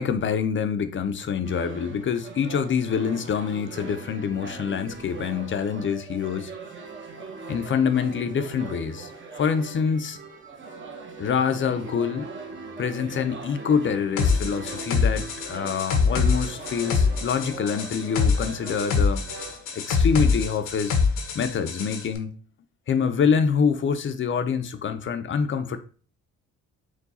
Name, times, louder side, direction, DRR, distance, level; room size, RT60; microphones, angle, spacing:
voice 1, 0.0-6.5 7.5-9.1 9.4-10.2 11.2-12.3 12.8-19.2 19.7-21.0 21.3-22.4 22.9-25.8, left 6 dB, 40° left, 0.5 m, -26 dB
sound 1, 1.4-19.9, right 3 dB, 40° right, 0.9 m, -40 dB
sound 2, 14.2-22.0, left 5 dB, 85° left, 0.8 m, -24 dB
4.5 x 2.3 x 4.1 m
cardioid pair, 90°, 30 cm